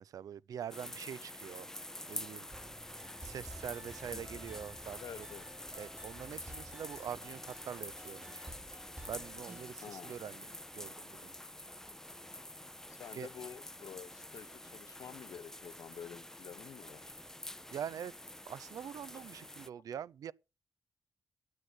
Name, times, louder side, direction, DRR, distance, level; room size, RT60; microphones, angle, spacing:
voice 1, 0.0-1.7 2.1-2.5 3.2-5.3 5.8-8.5 9.1-10.5 10.7-11.3 13.1-13.3 17.7-18.1 18.4-20.3, right 9 dB, 75° right, 0.5 m, -44 dB
sound 1, 0.7-19.7, left 1 dB, 10° left, 0.5 m, -47 dB
sound 2, 2.5-9.7, right 2 dB, 25° right, 2.3 m, -54 dB
voice 2, 5.0-5.5 9.8-10.1 12.9-17.1, left 8 dB, 75° left, 0.8 m, -49 dB
9.8 x 8.9 x 6.4 m
cardioid pair, 65°, 6 cm